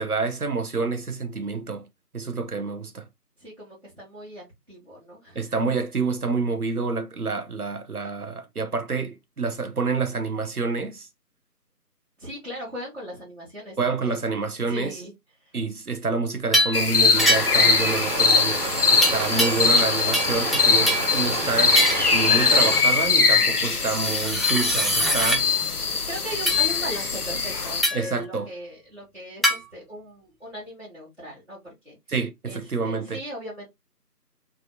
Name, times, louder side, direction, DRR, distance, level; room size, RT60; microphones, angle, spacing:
voice 1, 0.0-1.9 2.1-3.1 5.3-11.1 13.8-15.0 15.5-18.6 18.9-21.8 22.1-25.5 27.9-28.5 32.1-33.2, right 4 dB, 65° right, 0.7 m, -28 dB
voice 2, 3.4-5.4 12.2-14.2 14.7-15.1 15.4-15.6 25.8-32.0 32.4-33.6, equal, 40° right, 1.2 m, -38 dB
sound 1, 16.5-16.8 17.2-17.7 19.0-19.9 20.1-21.1 21.7-22.1 23.8-25.4 26.5-26.6 27.8-28.1 29.4-29.6, equal, ahead, 0.5 m, -23 dB
sound 2, 16.7-27.8, left 5 dB, 70° left, 0.6 m, -22 dB
sound 3, 17.1-22.8, right 2 dB, 90° right, 1.6 m, -29 dB
3.3 x 2.1 x 2.6 m
figure-of-eight pair, 175°, 48 cm